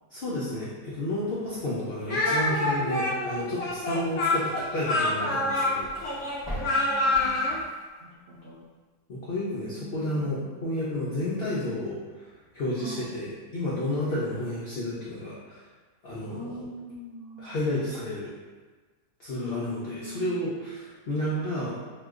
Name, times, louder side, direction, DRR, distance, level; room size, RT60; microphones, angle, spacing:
voice 1, 0.1-5.9 9.1-12.3 12.5-15.6 16.0-16.7 17.4-18.3 19.2-21.8, left 1 dB, 90° left, -7 dB, 0.5 m, -31 dB
voice 2, 1.4-2.0 5.0-5.2 6.6-7.6 8.0-8.6 9.6-10.6 12.8-13.2 16.3-17.6 19.4-20.5, left 1 dB, 80° right, -8 dB, 0.5 m, -42 dB
Speech, 2.1-7.6, left 2 dB, 60° left, 0.8 m, -26 dB
sound 1, 5.2-7.9, equal, 15° right, 0.7 m, -41 dB
2.9 x 2.1 x 3.5 m, 1.4 s
omnidirectional pair, 1.7 m